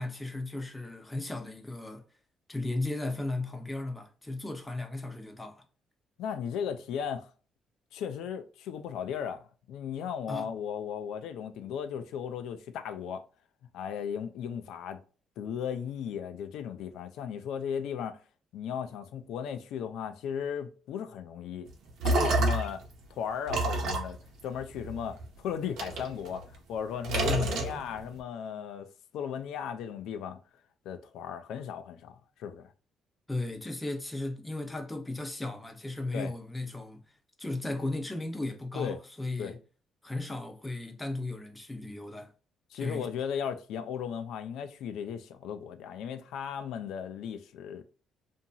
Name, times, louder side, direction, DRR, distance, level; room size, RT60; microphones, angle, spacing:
voice 1, 0.0-2.0 2.5-5.6 10.3-10.5 27.2-27.6 33.3-37.0 37.4-39.6 40.0-42.3 42.7-43.1, left 2 dB, 10° left, 0.6 m, -35 dB
voice 2, 6.2-7.3 7.9-13.2 13.7-15.0 15.4-18.2 18.5-21.7 22.0-22.8 23.1-28.9 29.1-30.4 30.9-32.7 36.1-36.3 38.8-39.0 39.4-39.5 42.7-47.8, left 8 dB, 85° left, 0.3 m, -36 dB
sound 1, 21.7-22.8 23.5-25.2 25.8-26.7 27.0-28.2, right 2 dB, 75° right, 0.8 m, -29 dB
2.8 x 2.6 x 2.3 m
cardioid pair, 125°, 0 cm